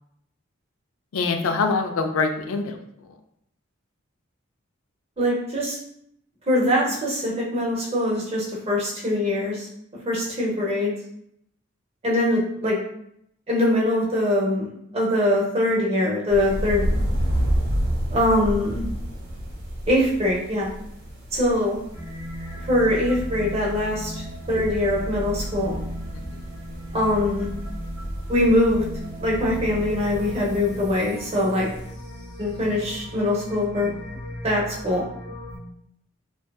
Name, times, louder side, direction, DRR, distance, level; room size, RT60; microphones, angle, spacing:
voice 1, 1.1-3.2 26.1-26.6, left 4 dB, 80° left, 6 dB, 0.3 m, -26 dB
voice 2, 5.2-5.8 6.5-9.7 10.1-10.9 12.0-12.8 13.5-16.9 18.1-18.8 19.9-20.7 21.3-21.8 22.7-25.8 26.9-27.5 28.3-28.8 29.2-31.7 32.4-33.9 34.4-35.0, left 1 dB, 30° right, -4 dB, 0.6 m, -22 dB
sound 1, 16.3-31.9, equal, 90° right, 0.9 m, -31 dB
sound 2, 21.9-35.6, equal, 20° left, 0.7 m, -35 dB
2.7 x 2.2 x 2.2 m, 0.72 s
head